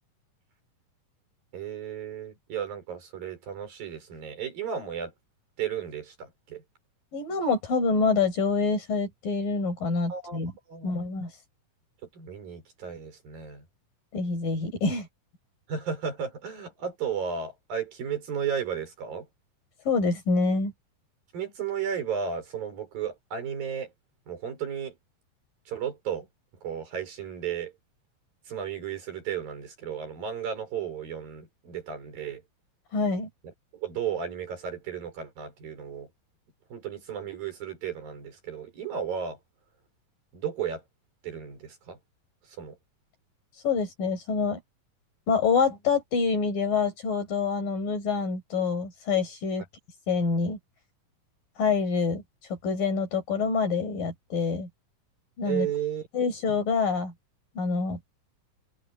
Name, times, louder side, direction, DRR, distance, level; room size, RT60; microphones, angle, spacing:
voice 1, 1.5-5.1 5.6-6.6 10.1-10.4 10.7-10.9 12.1-13.7 15.7-19.3 21.3-23.9 24.3-25.0 25.7-26.3 26.6-27.7 28.5-32.4 33.7-36.1 36.7-39.4 40.3-40.8 41.2-42.0 42.5-42.8 55.5-56.1, right 8 dB, 85° right, 7.0 m, -34 dB
voice 2, 7.1-10.5 10.8-11.3 14.1-15.1 19.9-20.7 32.9-33.3 43.6-44.6 45.3-49.6 50.1-50.6 51.6-52.2 52.5-54.7 55.4-55.7 56.1-57.1 57.6-58.0, left 4 dB, 75° left, 7.6 m, -26 dB
omnidirectional pair, 4.0 m